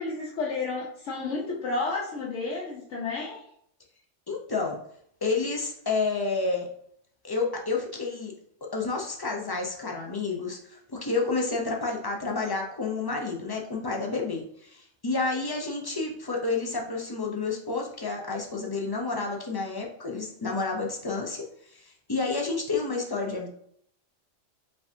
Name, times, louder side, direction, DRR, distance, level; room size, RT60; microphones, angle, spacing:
voice 1, 0.0-3.5, left 3 dB, 75° left, -4 dB, 1.2 m, -31 dB
voice 2, 4.3-4.8 5.2-6.7 7.2-8.3 8.6-21.4 21.7-23.5, left 3 dB, 30° left, 0 dB, 0.4 m, -30 dB
4.9 x 3.5 x 2.6 m, 0.68 s
omnidirectional pair, 1.3 m